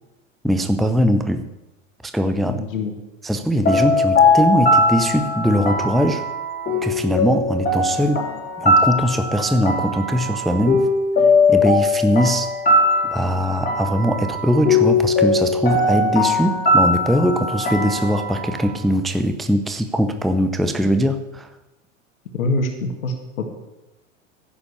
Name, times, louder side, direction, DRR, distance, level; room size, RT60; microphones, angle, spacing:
voice 1, 0.4-1.5 2.0-2.6 3.2-6.2 6.8-8.3 8.6-10.9 11.5-12.5 13.0-21.5, equal, ahead, 8 dB, 0.6 m, -21 dB
voice 2, 2.5-3.0 22.3-23.5, left 2 dB, 80° left, 3 dB, 2.0 m, -25 dB
sound 1, 3.6-18.7, left 2 dB, 25° left, 3.0 m, -20 dB
11.5 x 7.4 x 8.3 m, 0.97 s
hypercardioid pair, 100°, 40 cm